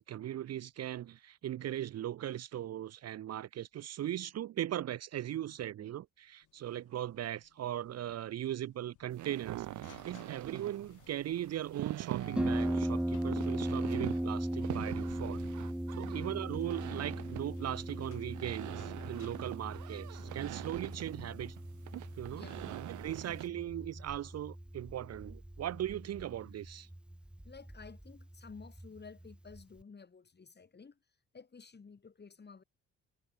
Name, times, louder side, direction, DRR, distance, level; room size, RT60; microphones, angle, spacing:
voice 1, 0.0-15.5 16.0-21.6 22.2-22.5 22.9-26.9, right 12 dB, 55° right, 0.7 m, -39 dB
sound 1, 6.4-22.1, left 14 dB, 85° left, 6.2 m, -62 dB
sound 2, 9.1-23.5, right 14 dB, 75° right, 1.0 m, -44 dB
Harp, 12.4-29.8, right 1 dB, 5° right, 0.6 m, -38 dB
voice 2, 16.1-16.5 22.3-22.8 23.2-23.4 27.4-31.0 31.3-32.6, left 5 dB, 35° left, 6.6 m, -53 dB
cardioid pair, 90°, 30 cm